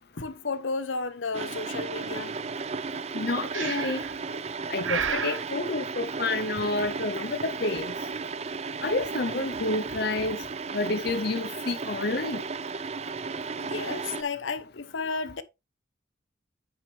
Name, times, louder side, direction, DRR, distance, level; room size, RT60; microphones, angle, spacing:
voice 1, 0.2-2.4 13.6-15.4, left 4 dB, 80° left, 0.8 m, -33 dB
sound 1, 1.3-14.2, right 4 dB, 35° right, 0.4 m, -34 dB
voice 2, 3.1-4.0 4.7-7.9 8.8-10.4 10.7-12.4, left 2 dB, 55° left, 0.7 m, -29 dB
Breathing, 3.5-4.1 4.8-5.4, right 7 dB, 90° right, 1.0 m, -30 dB
9.2 x 6.0 x 3.3 m
head